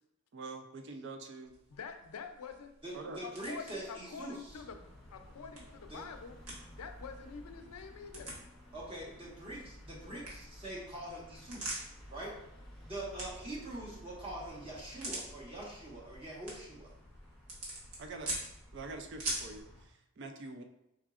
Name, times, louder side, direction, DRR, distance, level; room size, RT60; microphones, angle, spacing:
voice 1, 0.3-1.6 2.9-3.2 18.0-18.5 18.7-20.6, right 3 dB, 55° right, 5 dB, 0.4 m, -45 dB
sound 1, 1.4-19.6, right 1 dB, 90° right, 1.4 m, -47 dB
voice 2, 1.7-2.7 3.2-4.8 5.1-6.4 6.7-8.3, left 5 dB, 90° left, 7 dB, 0.5 m, -46 dB
voice 3, 2.8-4.6 5.9-6.1 8.7-11.8 12.1-12.3 12.8-16.9, right 1 dB, 25° right, -4 dB, 1.0 m, -44 dB
sound 2, 4.5-19.8, equal, 5° left, 0.7 m, -54 dB
4.7 x 3.5 x 2.4 m, 0.86 s
head